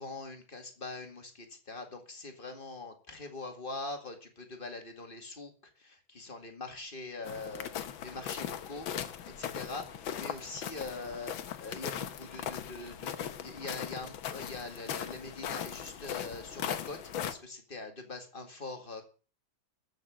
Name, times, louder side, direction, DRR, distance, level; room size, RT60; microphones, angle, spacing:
voice 1, 0.0-8.9 9.4-19.0, left 3 dB, 25° left, 5 dB, 2.2 m, -43 dB
sound 1, 7.2-17.3, left 9 dB, 80° left, 1.8 m, -39 dB
13.5 x 6.6 x 8.5 m, 0.38 s
omnidirectional pair, 2.1 m